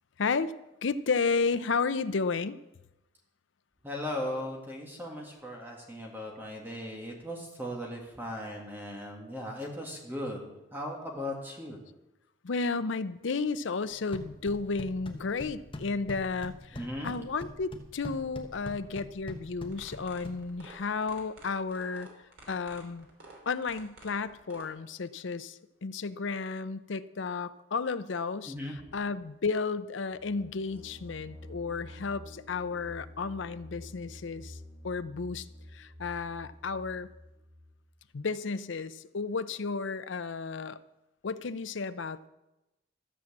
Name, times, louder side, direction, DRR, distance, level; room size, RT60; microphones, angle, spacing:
voice 1, 0.2-0.5 0.8-2.6 12.4-22.1 22.5-23.1 23.5-28.5 28.9-34.6 34.8-35.5 35.7-37.1 38.1-40.8 41.2-42.3, left 4 dB, 70° left, 13 dB, 0.6 m, -32 dB
voice 2, 3.8-11.8 16.7-17.1 28.5-28.7, left 1 dB, 10° right, 0 dB, 1.7 m, -38 dB
sound 1, 13.9-20.9, left 1 dB, 25° left, 1.1 m, -44 dB
sound 2, 19.7-24.7, right 2 dB, 75° right, 3.1 m, -51 dB
sound 3, 30.1-37.8, left 1 dB, 35° right, 2.0 m, -49 dB
13.5 x 7.5 x 7.1 m, 0.96 s
head